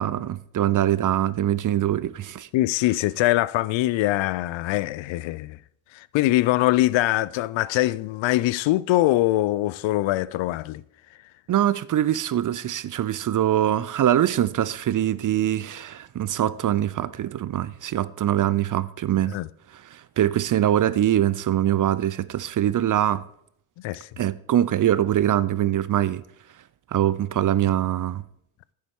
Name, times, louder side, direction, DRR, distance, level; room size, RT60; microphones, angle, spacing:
voice 1, 0.0-2.5 11.5-19.4 19.9-23.2 24.2-26.2 26.9-28.2, right 11 dB, 40° right, 0.5 m, -23 dB
voice 2, 2.5-5.6 5.9-10.8 19.3-19.5 23.8-24.1, left 16 dB, 65° left, 0.5 m, -23 dB
9.9 x 7.2 x 4.6 m
hypercardioid pair, 50°, 50 cm